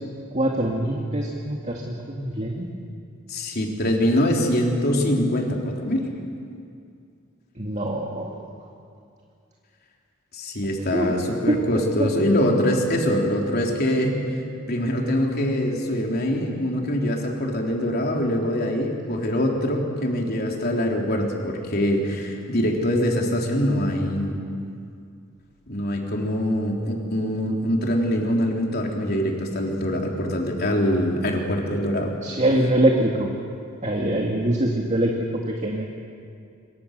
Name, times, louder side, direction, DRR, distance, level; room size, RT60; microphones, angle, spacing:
voice 1, 0.3-2.7 7.6-8.4 10.9-11.1 11.5-11.6 12.0-12.1 32.2-33.3 33.8-35.9, right 1 dB, 35° right, -1 dB, 2.1 m, -23 dB
voice 2, 3.3-6.1 10.3-14.2 14.7-24.4 25.7-32.1, equal, 50° left, 0 dB, 3.7 m, -23 dB
26.5 x 24.0 x 6.8 m, 2.4 s
head